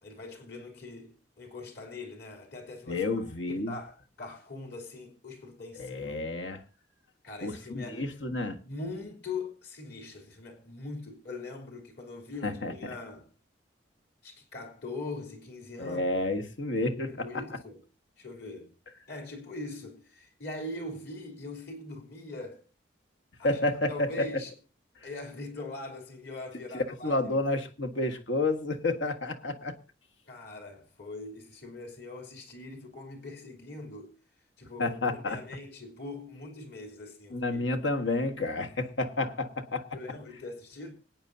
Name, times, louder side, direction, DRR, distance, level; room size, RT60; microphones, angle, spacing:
voice 1, 0.0-3.0 3.5-6.2 7.2-8.1 8.6-13.3 14.2-16.1 17.1-17.8 18.2-18.7 19.1-22.6 23.4-23.6 23.9-24.5 25.0-27.3 30.3-34.1 34.6-37.6 39.9-40.9, left 2 dB, 55° left, 3.3 m, -42 dB
voice 2, 2.9-3.7 5.7-6.6 7.4-8.6 12.4-12.7 15.8-17.4 23.4-24.3 26.7-29.7 34.8-35.4 37.3-40.0, left 2 dB, 80° left, 1.5 m, -30 dB
26.0 x 9.0 x 2.7 m
head